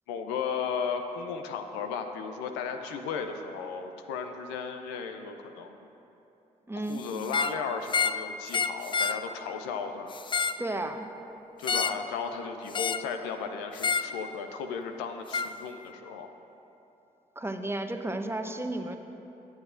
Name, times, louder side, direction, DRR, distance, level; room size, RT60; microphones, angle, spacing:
voice 1, 0.1-5.8 6.9-10.1 11.6-16.3, left 6 dB, 80° left, 6 dB, 0.6 m, -35 dB
voice 2, 6.7-7.1 10.6-11.1 17.4-19.0, right 1 dB, 15° right, 6 dB, 0.8 m, -33 dB
sound 1, 7.2-7.6 7.9-8.2 8.5-9.2 10.1-10.6 11.6-12.0 12.7-13.1 13.8-14.1 15.3-15.5, left 5 dB, 25° left, 0.4 m, -28 dB
21.5 x 7.3 x 2.6 m, 2.9 s
hypercardioid pair, 40°, 18 cm